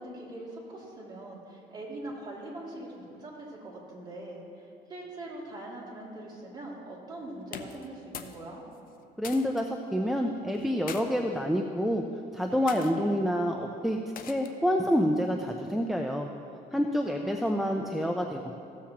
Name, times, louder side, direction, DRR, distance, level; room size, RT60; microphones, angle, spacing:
voice 1, 0.0-8.6 17.2-17.8, right 1 dB, 25° right, -5 dB, 2.5 m, -42 dB
sound 1, 7.4-8.4 8.7-9.6 10.5-11.0 11.8-12.1 12.7-12.9 14.2-14.6, left 8 dB, 55° left, 0.6 m, -42 dB
voice 2, 9.2-12.0 12.3-14.0 14.3-16.3 16.7-18.5, equal, ahead, 2 dB, 0.5 m, -28 dB
15.5 x 7.3 x 2.9 m, 2.6 s
cardioid pair, 110°, 17 cm